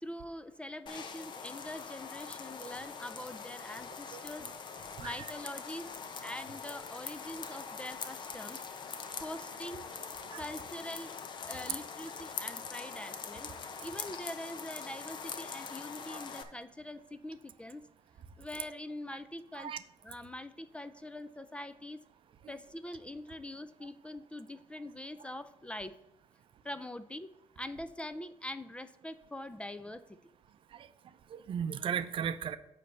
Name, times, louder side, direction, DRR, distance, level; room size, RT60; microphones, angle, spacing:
voice 1, 0.0-4.5 5.0-5.9 6.2-8.7 9.2-9.9 10.4-11.1 11.5-13.6 13.8-17.9 18.4-19.7 20.0-22.0 22.5-25.9 26.6-30.0, left 1 dB, 10° left, 12 dB, 0.4 m, -43 dB
sound 1, 0.9-16.4, left 5 dB, 45° left, 0.9 m, -43 dB
voice 2, 31.3-32.6, right 8 dB, 50° right, 12 dB, 0.6 m, -36 dB
9.3 x 3.3 x 6.8 m, 0.89 s
cardioid pair, 100°, 11 cm